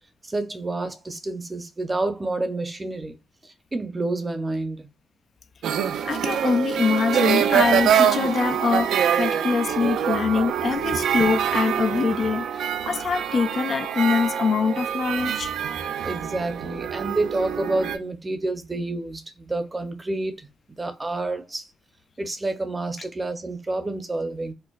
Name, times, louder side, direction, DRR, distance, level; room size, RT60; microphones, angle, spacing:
voice 1, 0.3-3.2 3.7-4.9 16.0-20.4 20.8-21.6 22.2-24.5, right 2 dB, 20° right, 0.6 m, -28 dB
sound 1, 5.6-18.0, right 9 dB, 80° right, 0.3 m, -25 dB
voice 2, 6.1-12.5 12.9-15.5, left 5 dB, 50° left, 0.3 m, -24 dB
4.5 x 2.1 x 2.3 m
cardioid pair, 90°, 0 cm